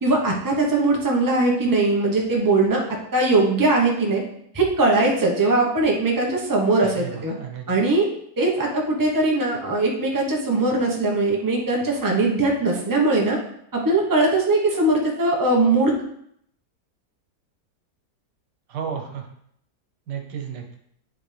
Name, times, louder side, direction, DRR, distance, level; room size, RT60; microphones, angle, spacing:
voice 1, 0.0-2.8 3.1-4.2 4.5-7.3 7.7-8.1 8.4-13.4 13.7-15.9, right 2 dB, 15° right, -1 dB, 0.9 m, -20 dB
voice 2, 6.8-7.9 18.7-19.3 20.1-20.6, right 7 dB, 90° right, 3 dB, 1.6 m, -33 dB
10.5 x 3.6 x 3.4 m, 0.71 s
omnidirectional pair, 1.8 m